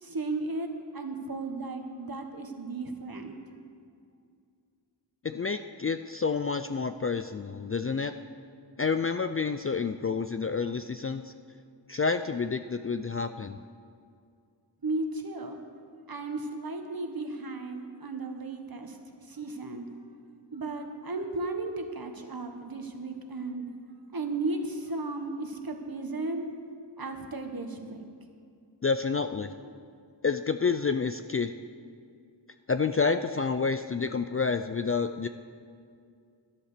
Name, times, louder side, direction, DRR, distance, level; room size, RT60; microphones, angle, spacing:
voice 1, 0.0-3.4 14.8-15.6 16.1-19.9 20.5-23.7 24.1-26.5 27.0-28.0 29.6-29.8, right 2 dB, 50° right, 5 dB, 1.4 m, -35 dB
voice 2, 5.2-8.1 8.8-11.3 11.9-13.6 28.8-29.5 30.2-31.5 32.7-35.3, left 5 dB, 30° left, 9 dB, 0.4 m, -29 dB
11.5 x 10.5 x 6.7 m, 2.3 s
wide cardioid pair, 65°, 46 cm